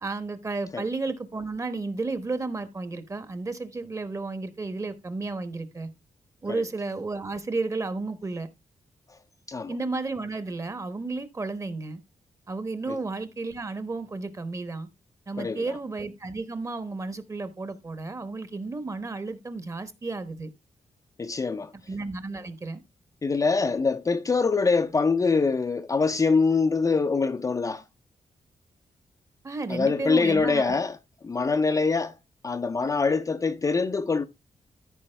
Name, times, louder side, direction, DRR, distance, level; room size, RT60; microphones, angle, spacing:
voice 1, 0.0-5.9 6.4-8.5 9.7-12.0 12.5-14.9 15.3-20.5 21.9-22.8 29.4-30.8, right 3 dB, 25° right, 1.1 m, -32 dB
voice 2, 21.2-21.7 23.2-27.8 29.7-31.0 31.2-32.2 32.4-34.2, left 4 dB, 30° left, 0.6 m, -24 dB
14.0 x 4.9 x 3.3 m
wide cardioid pair, 140°, 12 cm